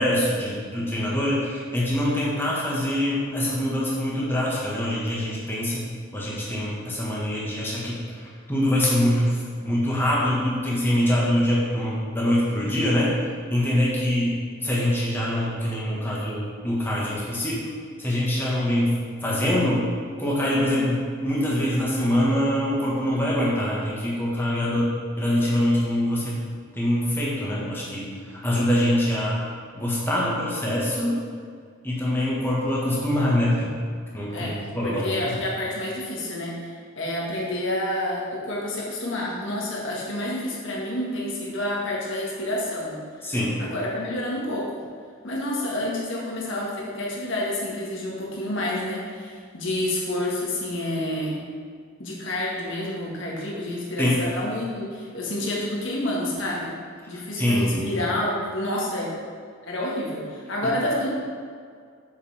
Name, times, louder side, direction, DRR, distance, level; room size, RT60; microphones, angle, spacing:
voice 1, 0.0-13.2 13.5-17.7 18.0-19.9 20.2-26.4 26.7-29.5 29.7-31.2 31.8-33.7 34.1-35.1 43.2-43.6 54.0-54.2 57.1-57.9 60.6-60.7, left 1 dB, 10° left, -6 dB, 1.6 m, -24 dB
voice 2, 34.8-43.3 43.6-44.7 45.2-51.4 52.0-56.8 57.1-59.1 59.6-61.1, left 1 dB, 60° left, -4 dB, 1.7 m, -29 dB
7.4 x 6.5 x 3.6 m, 2.1 s
head